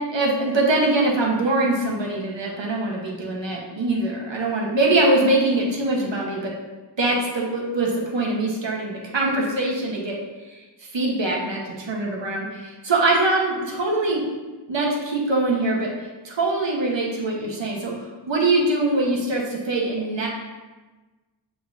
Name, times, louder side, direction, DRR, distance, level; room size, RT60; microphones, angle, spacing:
voice 1, 0.1-6.5 7.0-10.2 10.9-14.2 14.7-15.9 16.2-20.3, right 2 dB, 75° right, -2 dB, 1.4 m, -23 dB
7.8 x 5.3 x 2.8 m, 1.2 s
wide cardioid pair, 100°, 45 cm